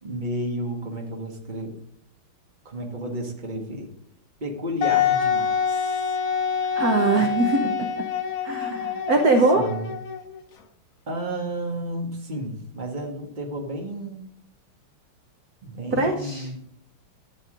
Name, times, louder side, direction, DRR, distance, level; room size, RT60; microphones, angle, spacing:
voice 1, 0.0-1.8 2.7-3.9 4.4-6.2 9.6-9.9 11.1-14.3 15.6-16.8, right 1 dB, 25° right, 1 dB, 1.6 m, -32 dB
Wind instrument woodwind instrument, 4.8-10.4, left 7 dB, 50° left, 1.1 m, -26 dB
voice 2, 6.8-7.9 8.4-9.7 15.9-16.5, right 3 dB, 50° right, 3 dB, 1.3 m, -22 dB
12.0 x 8.3 x 3.8 m, 0.74 s
omnidirectional pair, 2.3 m